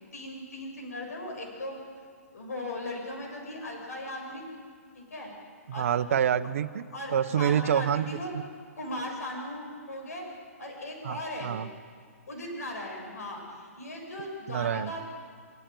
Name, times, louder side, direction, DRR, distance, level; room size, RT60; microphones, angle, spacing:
voice 1, 0.1-1.8 2.3-4.4 4.9-5.3 5.7-5.9 6.9-8.3 8.8-10.3 10.6-11.6 12.3-15.0, left 1 dB, 85° left, 1 dB, 7.4 m, -38 dB
voice 2, 5.7-8.2 11.0-11.7 14.5-14.9, right 9 dB, 60° right, 11 dB, 1.1 m, -27 dB
26.0 x 15.0 x 9.4 m, 2.1 s
hypercardioid pair, 150°, 8 cm